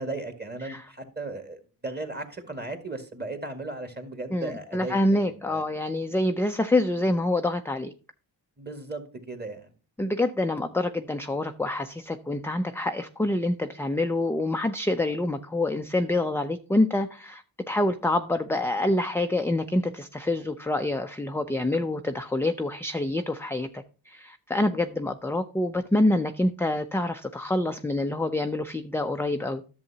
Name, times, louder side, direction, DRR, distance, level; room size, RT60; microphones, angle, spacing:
voice 1, 0.0-5.6 8.6-9.7, right 2 dB, 20° right, 6 dB, 1.8 m, -36 dB
voice 2, 4.3-7.9 10.0-17.4 17.7-29.6, left 1 dB, 5° left, 6 dB, 0.4 m, -26 dB
11.0 x 7.0 x 2.8 m, 0.37 s
cardioid pair, 60°, 46 cm